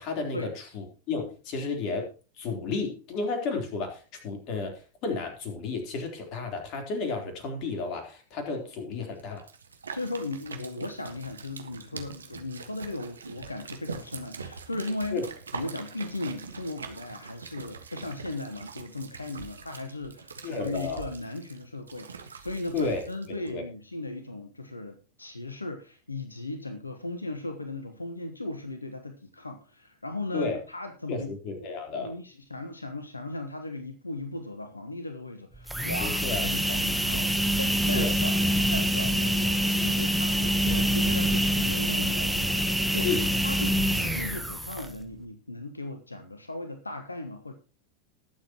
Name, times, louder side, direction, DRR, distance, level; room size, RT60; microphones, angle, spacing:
voice 1, 0.0-2.1 2.4-9.4 15.1-15.2 20.4-21.1 22.7-23.0 23.5-23.6 30.3-30.6 31.1-32.1 36.0-36.4 37.9-38.1 43.0-43.3, left 4 dB, 40° left, 4 dB, 3.7 m, -32 dB
sound 1, 9.2-23.5, right 5 dB, 75° right, 1.5 m, -43 dB
voice 2, 9.9-15.3 15.5-31.3 31.6-31.7 32.0-38.4 38.7-43.1 43.4-47.5, left 2 dB, 80° left, 8 dB, 1.2 m, -37 dB
sound 2, 35.5-45.0, equal, ahead, 1.3 m, -26 dB
20.0 x 7.6 x 3.0 m, 0.36 s
figure-of-eight pair, 90°, 0 cm